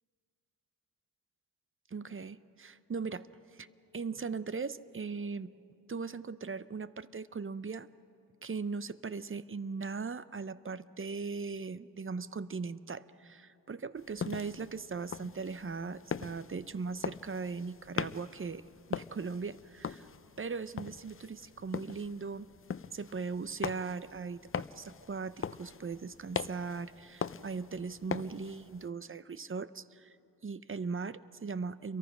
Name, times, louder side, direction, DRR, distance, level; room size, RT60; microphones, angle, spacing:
voice 1, 1.9-3.7 3.9-5.5 5.9-7.9 8.4-18.6 18.9-20.1 20.4-22.5 22.9-30.2 30.4-32.0, right 4 dB, 35° right, 15 dB, 0.7 m, -39 dB
sound 1, 14.0-28.9, left 6 dB, 35° left, 0.6 m, -42 dB
28.5 x 23.0 x 6.0 m, 2.6 s
cardioid pair, 55°, 37 cm